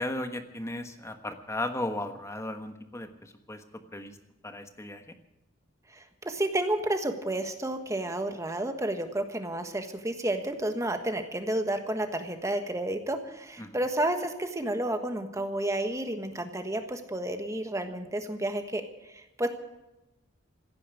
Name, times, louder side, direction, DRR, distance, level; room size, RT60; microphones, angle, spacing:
voice 1, 0.0-3.6 3.9-4.2 4.4-5.1 13.6-13.8, left 1 dB, 15° left, 7 dB, 1.3 m, -36 dB
voice 2, 5.9-18.8 19.1-19.5, right 1 dB, 15° right, 6 dB, 1.4 m, -31 dB
16.0 x 9.7 x 9.2 m, 0.93 s
head